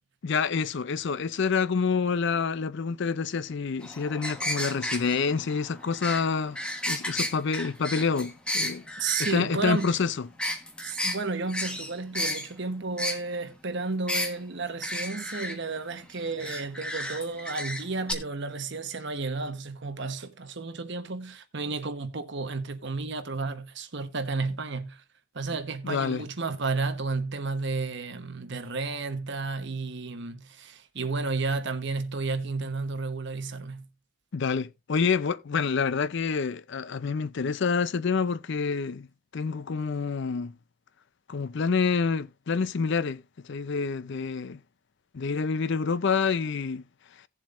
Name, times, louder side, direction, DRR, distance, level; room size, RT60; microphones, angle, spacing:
voice 1, 0.2-6.6 6.9-8.8 9.3-10.3 25.8-26.2 34.3-39.1 39.3-40.5 41.3-43.2 43.5-44.6 45.1-46.8, left 5 dB, 55° left, 0.5 m, -27 dB
sound 1, 3.8-9.4 9.7-10.0 10.4-11.2 11.5-12.5 13.0-13.2 14.1-14.3 14.8-15.6 16.4-17.8 18.1-18.2, left 1 dB, 5° left, 1.2 m, -32 dB
voice 2, 9.0-9.9 10.8-25.0 25.3-33.9, right 3 dB, 55° right, 1.0 m, -32 dB
17.0 x 7.3 x 2.5 m
head